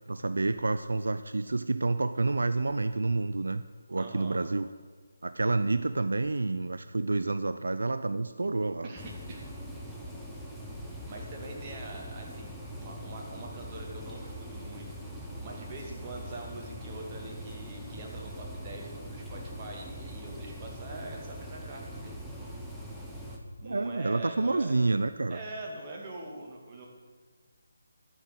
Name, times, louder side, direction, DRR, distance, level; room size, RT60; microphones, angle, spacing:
voice 1, 0.1-3.6 3.9-4.7 5.2-8.9 23.6-25.4, right 3 dB, 75° right, 12 dB, 0.4 m, -29 dB
voice 2, 4.0-4.4 8.8-9.4 10.8-14.9 15.4-22.1 23.6-24.8 25.3-26.9, right 2 dB, 25° right, -1 dB, 2.3 m, -43 dB
sound 1, 9.0-23.4, equal, ahead, 1.2 m, -42 dB
12.0 x 6.1 x 7.9 m, 1.5 s
figure-of-eight pair, 155°, 0 cm